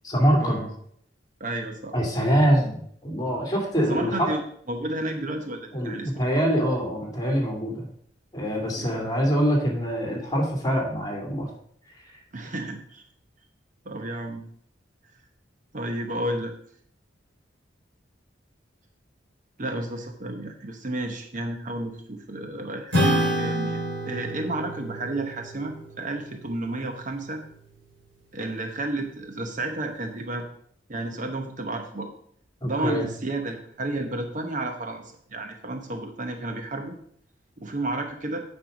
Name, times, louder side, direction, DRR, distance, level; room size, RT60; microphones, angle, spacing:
voice 1, 0.0-0.7 1.9-4.3 5.7-7.9 8.3-11.5 12.1-12.2 32.6-33.0, equal, 20° left, -1 dB, 2.4 m, -24 dB
voice 2, 1.4-2.3 3.9-4.4 4.7-6.2 8.8-9.0 12.3-13.1 13.8-14.4 15.7-16.5 19.6-27.4 28.3-30.5 30.9-32.1 32.6-36.9 37.6-38.4, right 2 dB, 45° right, 5 dB, 0.9 m, -32 dB
Acoustic guitar / Strum, 22.9-27.7, equal, 85° right, 3.4 m, -29 dB
9.0 x 5.4 x 5.2 m, 0.65 s
head